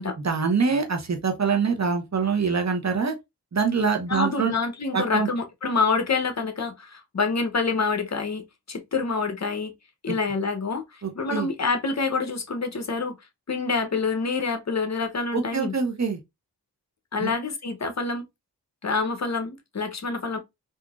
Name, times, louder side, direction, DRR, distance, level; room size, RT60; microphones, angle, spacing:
voice 1, 0.2-3.1 3.5-4.5 4.9-5.3 10.1-10.2 11.0-11.5 15.3-16.2 17.2-17.3, right 5 dB, 45° right, 1.0 m, -24 dB
voice 2, 4.1-9.7 10.0-10.8 11.1-13.2 13.5-15.7 17.1-18.2 18.8-20.4, left 4 dB, 45° left, 0.8 m, -27 dB
3.8 x 2.6 x 2.4 m
cardioid pair, 55°, 39 cm